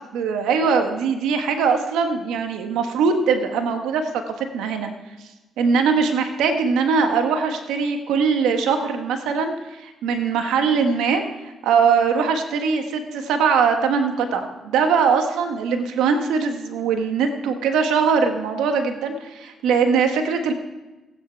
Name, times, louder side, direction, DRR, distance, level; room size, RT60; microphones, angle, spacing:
voice 1, 0.1-4.1 4.4-4.9 5.6-11.2 11.6-20.5, right 5 dB, 90° right, 5 dB, 1.4 m, -21 dB
17.0 x 9.3 x 4.6 m, 1.1 s
cardioid pair, 90°, 0 cm